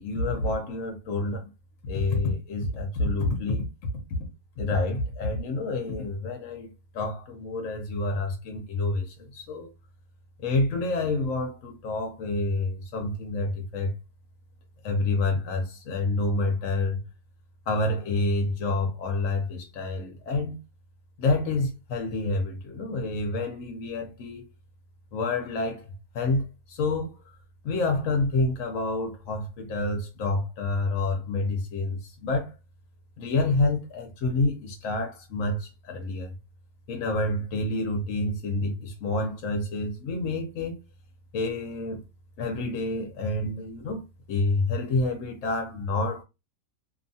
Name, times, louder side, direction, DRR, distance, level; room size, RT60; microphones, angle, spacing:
voice 1, 0.0-1.5 1.8-3.7 4.6-9.7 10.4-13.9 14.8-17.0 17.7-20.6 21.2-24.5 25.1-25.8 26.1-27.2 27.6-32.5 33.2-36.3 36.9-40.8 41.3-42.0 42.4-44.0 44.3-46.2, left 2 dB, 60° left, 0.9 m, -28 dB
2.9 x 2.2 x 2.6 m
omnidirectional pair, 1.9 m